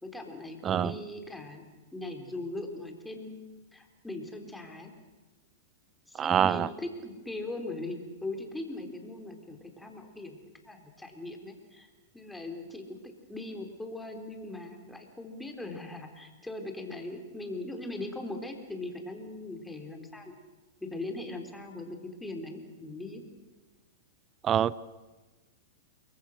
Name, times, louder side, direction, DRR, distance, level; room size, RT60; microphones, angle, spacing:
voice 1, 0.0-1.6 1.9-3.4 3.7-4.9 6.1-20.4 20.8-23.2, left 2 dB, 5° left, 4 dB, 3.9 m, -40 dB
voice 2, 0.6-0.9 6.2-6.7 24.4-24.7, right 9 dB, 25° right, 20 dB, 0.7 m, -25 dB
28.5 x 22.5 x 6.6 m, 1.2 s
hypercardioid pair, 120°, 0 cm